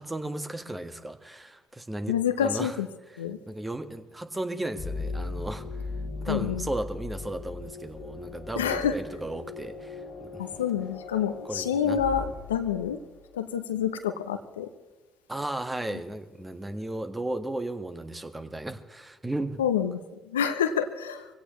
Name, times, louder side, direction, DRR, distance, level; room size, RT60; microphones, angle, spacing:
voice 1, 0.0-2.7 3.5-5.6 6.2-10.4 11.5-12.0 15.3-19.6, right 1 dB, 15° right, 8 dB, 1.6 m, -35 dB
voice 2, 2.1-2.9 3.2-3.4 6.3-6.7 8.6-9.0 10.4-13.0 13.3-14.7 19.6-20.0 20.3-21.3, left 8 dB, 90° left, 9 dB, 0.8 m, -27 dB
sound 1, 4.8-13.4, left 3 dB, 60° left, 2.0 m, -38 dB
23.5 x 17.0 x 3.2 m, 1.3 s
hypercardioid pair, 50°, 0 cm